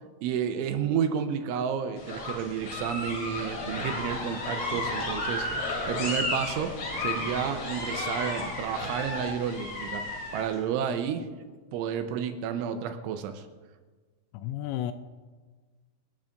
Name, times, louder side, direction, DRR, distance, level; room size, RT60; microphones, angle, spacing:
voice 1, 0.2-5.5 5.9-6.7 7.0-10.0 10.3-11.3 11.7-13.5, right 8 dB, 80° right, 2.9 m, -31 dB
sound 1, 2.0-10.5, left 2 dB, 60° left, 6.0 m, -33 dB
voice 2, 14.3-14.9, left 12 dB, 85° left, 2.9 m, -32 dB
26.5 x 11.0 x 2.5 m
omnidirectional pair, 6.0 m